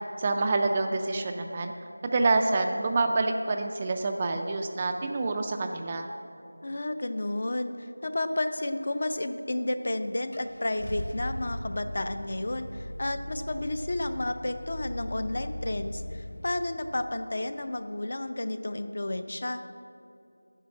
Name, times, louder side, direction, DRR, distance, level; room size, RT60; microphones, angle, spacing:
voice 1, 0.2-1.7 2.0-6.1, right 3 dB, 15° right, 4 dB, 0.3 m, -27 dB
voice 2, 6.6-19.6, left 1 dB, 40° left, 10 dB, 0.5 m, -32 dB
Car / Engine starting, 9.6-9.7 10.3-16.5, left 1 dB, 65° left, 1.3 m, -38 dB
10.0 x 6.4 x 8.6 m, 2.7 s
figure-of-eight pair, 175°, 0 cm